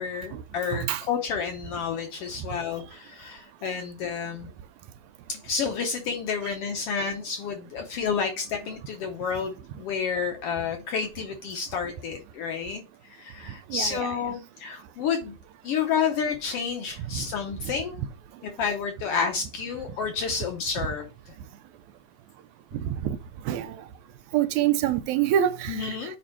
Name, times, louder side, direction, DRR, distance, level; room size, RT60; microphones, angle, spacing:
voice 1, 0.0-4.5 5.3-12.8 13.1-15.3 15.6-18.0 18.4-21.1 25.7-26.1, left 6 dB, 70° left, 1.5 m, -30 dB
voice 2, 0.7-1.0 6.4-6.5 13.7-14.2 17.1-17.2 22.7-23.2 23.5-23.8 24.3-26.2, right 11 dB, 80° right, 1.8 m, -26 dB
8.5 x 3.5 x 4.4 m
omnidirectional pair, 3.5 m